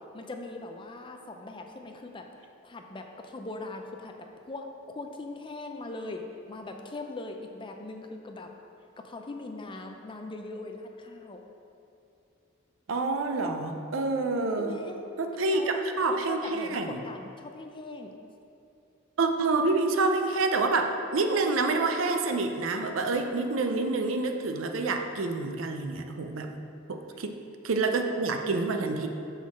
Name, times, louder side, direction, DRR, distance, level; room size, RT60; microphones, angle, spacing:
voice 1, 0.1-2.2 2.6-4.2 4.5-6.2 6.5-8.5 9.0-11.4 14.6-15.0 15.5-15.7 16.1-18.1, left 2 dB, 25° left, 4 dB, 0.5 m, -40 dB
voice 2, 12.9-14.8 15.2-17.0 19.2-26.5 26.9-27.3 27.6-29.1, right 3 dB, 70° right, 5 dB, 0.5 m, -27 dB
6.2 x 3.8 x 6.1 m, 2.6 s
head